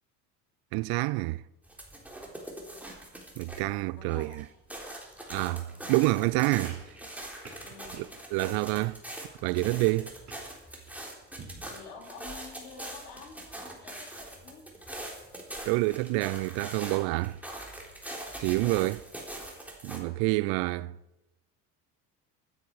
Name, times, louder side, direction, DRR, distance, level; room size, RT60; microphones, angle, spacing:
voice 1, 0.7-1.4 3.4-4.4 5.3-6.8 8.0-9.0 9.4-10.1 15.7-17.4 18.4-19.0 19.8-21.0, right 22 dB, 50° right, 0.5 m, -28 dB
sound 1, 1.6-3.8 4.1-20.0, right 1 dB, 5° right, 3.7 m, -43 dB
voice 2, 4.0-4.4 6.0-6.1 7.6-8.1 11.5-14.6, left 5 dB, 75° left, 4.1 m, -48 dB
sound 2, 6.6-11.7, right 3 dB, 35° right, 5.5 m, -52 dB
25.0 x 9.4 x 4.8 m
hypercardioid pair, 70°, 48 cm